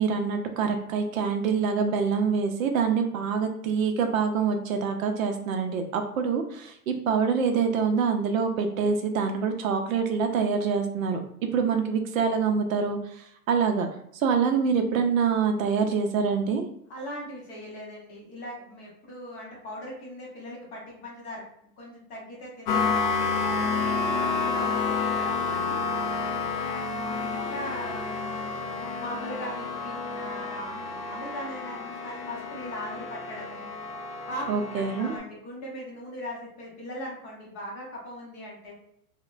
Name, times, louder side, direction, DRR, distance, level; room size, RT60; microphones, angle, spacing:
voice 1, 0.0-11.2 11.5-13.9 14.1-16.7 34.5-35.1, right 5 dB, 60° right, 5 dB, 0.5 m, -25 dB
voice 2, 16.9-21.4 21.8-23.6 23.8-25.8 26.6-28.3 28.7-33.7 34.3-34.5 35.0-38.7, equal, 25° left, -3 dB, 0.7 m, -40 dB
sound 1, 22.7-35.2, left 4 dB, 85° left, 0.7 m, -30 dB
2.8 x 2.1 x 2.4 m, 0.71 s
hypercardioid pair, 140°, 47 cm